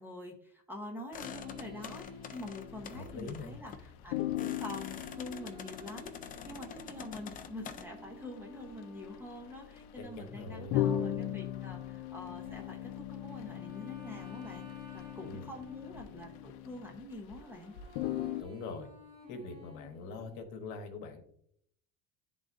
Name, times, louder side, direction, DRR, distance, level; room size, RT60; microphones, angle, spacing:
voice 1, 0.0-6.1 6.4-14.7 14.9-17.7, left 1 dB, 5° right, 1 dB, 0.8 m, -46 dB
sound 1, 1.1-7.9, left 7 dB, 25° left, 0.4 m, -47 dB
sound 2, 1.2-3.5 3.7-3.8 4.1-17.4 17.7-18.4, left 12 dB, 85° left, 0.6 m, -39 dB
sound 3, 1.2-3.4 5.0-11.0 12.4-16.5 17.4-20.4, left 1 dB, 55° right, 2.0 m, -54 dB
voice 2, 2.9-3.6 10.0-10.8 15.2-15.5 18.4-18.9 19.3-21.2, left 4 dB, 65° left, 5 dB, 1.1 m, -43 dB
10.5 x 3.8 x 2.5 m, 0.70 s
cardioid pair, 150°, 32 cm